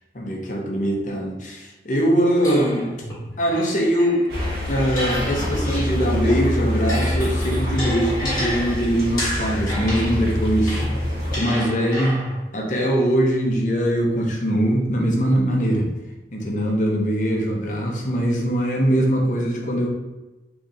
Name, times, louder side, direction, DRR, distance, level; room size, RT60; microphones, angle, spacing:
voice 1, 0.1-2.9 3.4-4.3 4.7-10.8 11.3-12.2 12.5-15.9 16.3-19.9, equal, 45° left, -1 dB, 0.7 m, -22 dB
sound 1, 2.4-6.2 6.6-12.4, equal, 20° left, 1.5 m, -31 dB
sound 2, 4.3-11.4, left 1 dB, 55° right, 1.1 m, -25 dB
4.0 x 2.8 x 2.4 m, 1.1 s
head